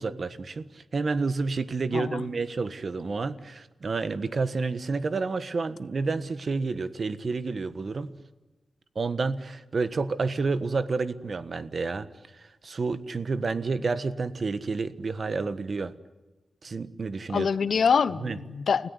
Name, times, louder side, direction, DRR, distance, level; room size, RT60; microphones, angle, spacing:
voice 1, 0.0-8.1 8.9-12.1 12.3-15.9 16.6-17.5 18.2-18.4, right 4 dB, 55° right, 1.4 m, -30 dB
voice 2, 1.9-2.3 17.3-18.9, left 6 dB, 80° left, 0.9 m, -25 dB
30.0 x 17.5 x 9.9 m
wide cardioid pair, 130°, 0 cm